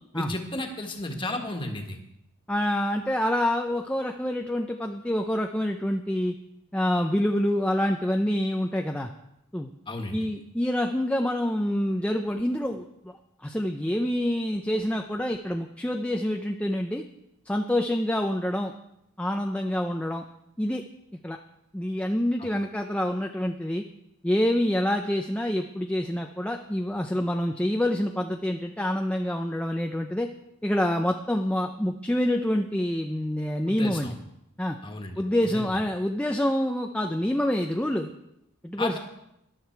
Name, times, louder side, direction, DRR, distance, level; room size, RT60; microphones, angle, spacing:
voice 1, 0.1-2.0 9.9-10.2 22.4-22.5 33.6-34.1 34.8-35.2 35.5-35.7 38.8-39.0, left 2 dB, 25° left, 3 dB, 1.6 m, -33 dB
voice 2, 2.5-6.3 6.7-9.1 9.5-9.7 10.1-13.1 13.4-17.0 17.5-18.7 19.2-20.2 20.6-20.8 21.2-21.4 21.7-23.8 24.2-30.3 30.6-34.2 34.6-34.8 35.2-38.1 38.6-39.0, left 1 dB, 5° left, 3 dB, 0.5 m, -27 dB
14.0 x 11.5 x 4.6 m, 0.81 s
head